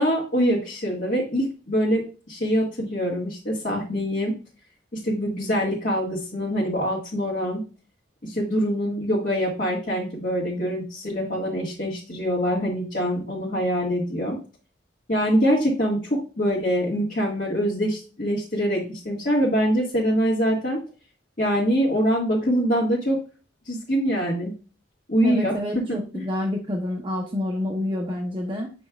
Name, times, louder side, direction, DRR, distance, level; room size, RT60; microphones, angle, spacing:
voice 1, 0.0-4.3 5.0-7.6 8.2-14.4 15.1-20.8 21.4-23.2 23.7-24.5 25.1-25.5 25.9-26.2, equal, 45° left, -7 dB, 1.8 m, -24 dB
voice 2, 25.2-28.7, left 1 dB, 25° right, 0 dB, 0.8 m, -28 dB
7.7 x 5.2 x 2.4 m, 0.34 s
head